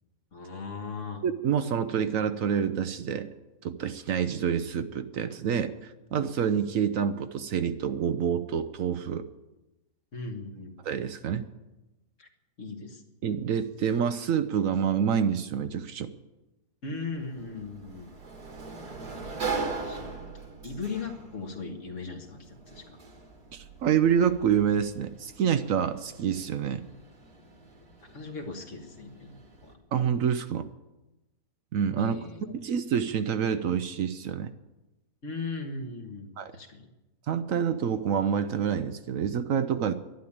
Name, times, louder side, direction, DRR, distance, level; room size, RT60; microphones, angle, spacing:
voice 1, 0.3-1.2 10.1-10.7 12.2-12.3 12.6-13.0 16.8-18.1 19.8-20.0 20.6-23.0 28.0-29.8 32.0-32.4 35.2-36.9, left 4 dB, 50° left, 4 dB, 1.9 m, -38 dB
voice 2, 1.2-3.3 3.6-9.3 10.8-11.5 13.2-16.1 23.5-26.8 29.9-30.7 31.7-32.2 32.6-34.5 36.4-36.5 37.3-39.9, right 8 dB, 65° right, 11 dB, 1.0 m, -27 dB
Sliding door, 17.1-29.7, right 4 dB, 80° right, 2.6 m, -41 dB
11.5 x 11.5 x 8.6 m, 1.0 s
omnidirectional pair, 1.6 m